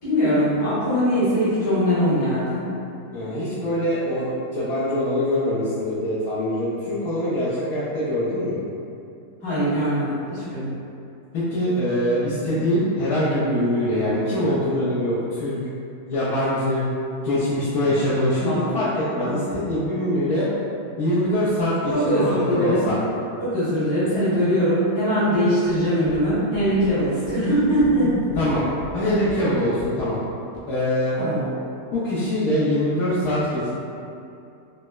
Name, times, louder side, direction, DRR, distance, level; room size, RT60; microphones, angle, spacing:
voice 1, 0.0-2.7 9.4-10.7 18.4-18.7 19.2-19.4 21.9-22.9 23.4-28.1 31.2-31.4, equal, 60° left, -13 dB, 1.8 m, -21 dB
voice 2, 3.1-8.6 11.3-15.6 16.1-16.8 17.2-18.4 18.7-20.5 21.0-23.0 28.3-28.6 28.9-30.2 30.7-31.2 31.9-33.7, left 1 dB, 75° left, -11 dB, 1.2 m, -23 dB
sound 1, 25.6-30.6, right 2 dB, 75° right, 1.1 m, -42 dB
3.9 x 2.1 x 2.2 m, 2.6 s
omnidirectional pair, 1.7 m